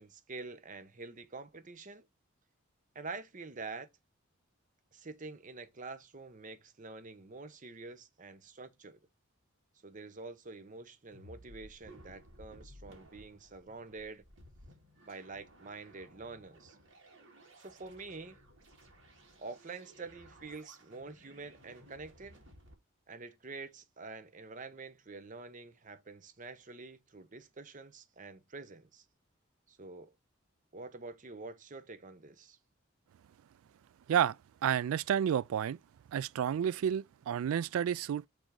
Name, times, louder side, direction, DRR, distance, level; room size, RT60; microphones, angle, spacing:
voice 1, 0.0-2.1 2.9-3.9 4.9-9.0 9.8-14.2 15.1-16.8 17.6-18.4 19.4-22.4 23.1-29.0 29.7-30.1 30.7-32.6, right 3 dB, 40° right, 0.8 m, -47 dB
sound 1, 11.1-22.7, equal, 60° right, 2.2 m, -57 dB
voice 2, 34.6-35.8 36.1-38.3, right 9 dB, 80° right, 0.3 m, -30 dB
6.2 x 3.5 x 4.7 m
head